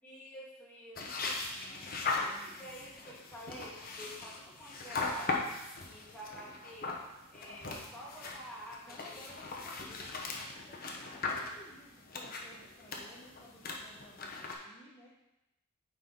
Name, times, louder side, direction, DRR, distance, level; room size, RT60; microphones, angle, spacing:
voice 1, 0.0-1.9 2.2-5.5 5.9-7.0 7.3-9.2, equal, 5° left, -7 dB, 2.1 m, -49 dB
sound 1, 1.0-14.5, left 3 dB, 45° left, 1.0 m, -39 dB
voice 2, 1.6-2.9 8.8-15.1, left 1 dB, 25° left, -5 dB, 0.9 m, -56 dB
9.2 x 4.5 x 3.9 m, 0.94 s
head